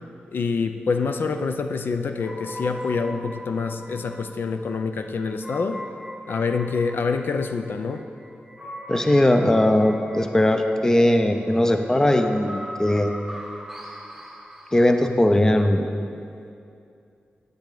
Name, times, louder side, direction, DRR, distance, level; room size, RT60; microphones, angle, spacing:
voice 1, 0.3-5.8 6.3-8.0, left 4 dB, 75° left, 7 dB, 0.5 m, -26 dB
sound 1, 2.2-15.3, equal, 5° right, 1.2 m, -40 dB
voice 2, 8.9-13.1 14.7-15.9, left 1 dB, 15° left, 6 dB, 0.5 m, -19 dB
10.5 x 9.1 x 3.9 m, 2.5 s
wide cardioid pair, 140°, 4 cm